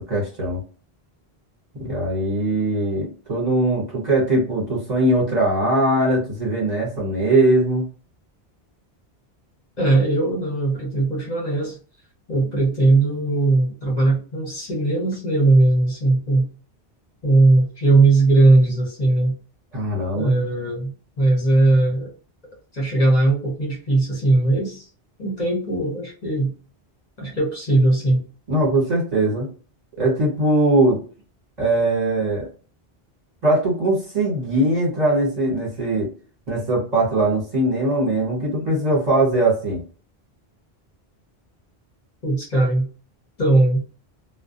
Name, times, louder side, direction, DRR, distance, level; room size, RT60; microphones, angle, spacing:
voice 1, 0.1-0.6 1.8-7.9 19.7-20.4 28.5-29.5 30.0-31.0 31.6-32.5 33.4-36.1 36.5-39.8, right 1 dB, 45° right, -4 dB, 1.3 m, -20 dB
voice 2, 9.8-11.8 12.3-16.5 17.2-19.3 20.1-20.9 21.2-22.1 22.7-24.9 25.2-26.5 27.2-28.2 42.2-42.9 43.4-43.8, right 2 dB, 45° left, -3 dB, 0.9 m, -19 dB
2.3 x 2.1 x 2.5 m, 0.37 s
omnidirectional pair, 1.1 m